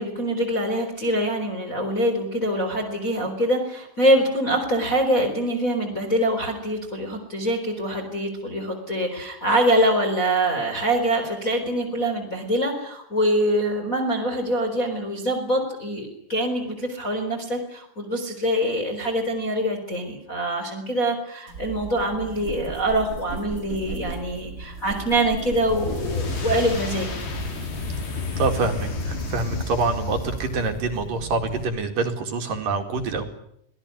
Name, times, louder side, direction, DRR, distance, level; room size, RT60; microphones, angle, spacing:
voice 1, 0.0-27.1, right 1 dB, 15° left, 3 dB, 4.2 m, -24 dB
sound 1, 21.5-31.6, right 3 dB, 25° right, 3.8 m, -37 dB
sound 2, 25.5-30.8, left 4 dB, 55° left, 6.4 m, -31 dB
voice 2, 28.4-33.2, right 3 dB, 50° right, 6 dB, 3.4 m, -26 dB
25.5 x 18.5 x 9.7 m, 0.74 s
omnidirectional pair, 5.6 m